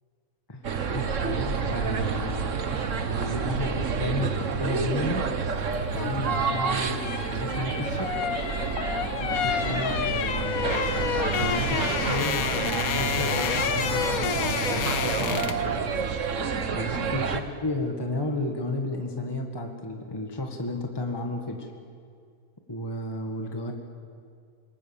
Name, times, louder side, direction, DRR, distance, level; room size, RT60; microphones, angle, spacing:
sound 1, 0.6-17.4, right 5 dB, 60° right, 1.5 m, -29 dB
voice 1, 0.9-2.8 3.2-5.3 5.9-8.2 9.2-11.1 11.4-15.8 16.7-21.7 22.7-23.7, left 2 dB, 15° left, 2 dB, 1.8 m, -33 dB
sound 2, 5.7-15.7 16.0-16.2, left 8 dB, 75° left, 1.3 m, -30 dB
sound 3, 9.2-16.8, equal, 5° right, 7.1 m, -51 dB
27.0 x 23.0 x 7.2 m, 2.2 s
omnidirectional pair, 1.5 m